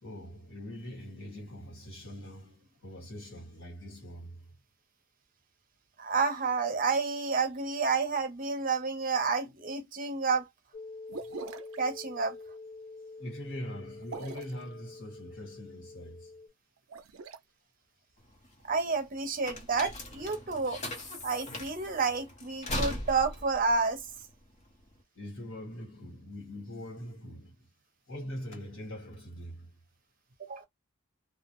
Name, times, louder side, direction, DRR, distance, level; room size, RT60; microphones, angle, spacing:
voice 1, 0.0-4.5 13.2-16.3 25.1-27.7 28.1-29.7, equal, 70° left, 1.5 m, -42 dB
voice 2, 6.0-10.5 11.8-12.4 18.6-20.8 21.2-24.0 30.4-30.6, right 4 dB, 40° right, 0.6 m, -30 dB
sound 1, 10.7-16.5, left 3 dB, 50° left, 1.0 m, -47 dB
sound 2, 11.1-11.8 14.0-14.6 16.8-17.4, right 4 dB, 85° right, 0.5 m, -42 dB
sound 3, 18.2-25.0, left 1 dB, 35° left, 0.6 m, -39 dB
2.3 x 2.0 x 2.9 m
head